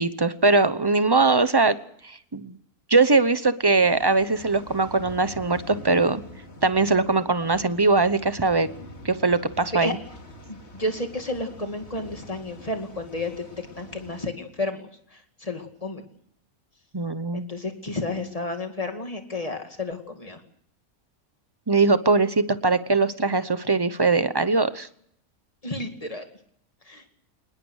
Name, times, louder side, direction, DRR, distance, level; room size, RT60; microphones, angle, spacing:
voice 1, 0.0-1.7 2.0-2.6 2.9-6.2 6.6-8.7 9.0-10.0 16.9-17.5 21.7-24.9, right 3 dB, 20° right, 13 dB, 0.7 m, -21 dB
sound 1, 3.8-14.3, left 1 dB, 50° left, 2.5 m, -45 dB
voice 2, 10.5-13.4 13.8-14.9 15.4-16.0 17.3-20.4 25.6-26.2 26.9-27.0, left 2 dB, 25° left, 5 dB, 2.4 m, -31 dB
24.5 x 20.0 x 6.4 m, 0.67 s
omnidirectional pair, 1.6 m